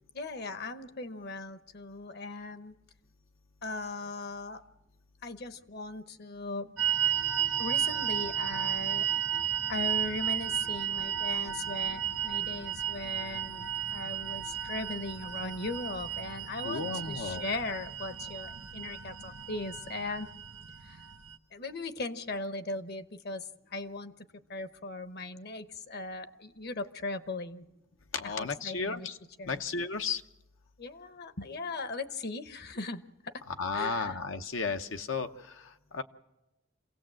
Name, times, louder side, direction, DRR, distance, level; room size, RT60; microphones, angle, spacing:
voice 1, 0.1-2.7 3.6-4.7 5.2-6.8 7.6-9.0 9.7-20.3 20.8-21.0 21.5-24.1 24.5-27.7 28.2-29.1 29.4-29.6 30.8-33.3 33.7-34.2, left 3 dB, 55° left, 11 dB, 1.0 m, -38 dB
sound 1, 6.8-21.3, right 9 dB, 70° right, 0.8 m, -33 dB
voice 2, 16.6-17.4 28.1-29.2 29.5-30.2 33.5-36.0, left 4 dB, 85° left, 7 dB, 1.0 m, -34 dB
27.0 x 17.0 x 7.7 m, 0.98 s
head